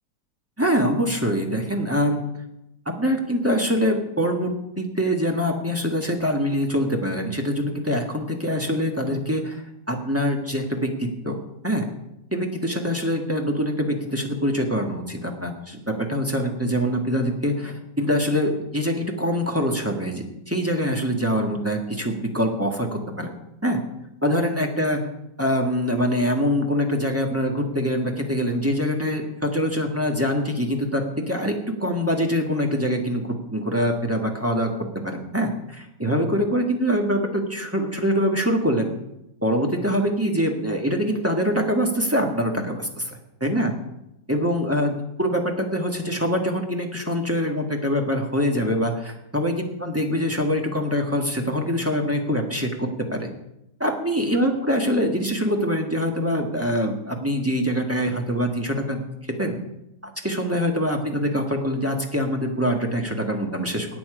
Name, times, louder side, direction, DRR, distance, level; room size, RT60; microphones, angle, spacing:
voice 1, 0.6-2.2 2.8-4.5 4.8-9.6 9.9-11.4 11.6-11.9 12.3-23.3 23.6-23.8 24.2-25.0 25.4-31.5 31.8-38.9 39.4-43.7 44.3-53.3 53.8-59.0 59.4-59.6 60.2-63.9, equal, 10° right, 1 dB, 1.5 m, -24 dB
17.5 x 8.8 x 5.0 m, 0.86 s
omnidirectional pair, 1.9 m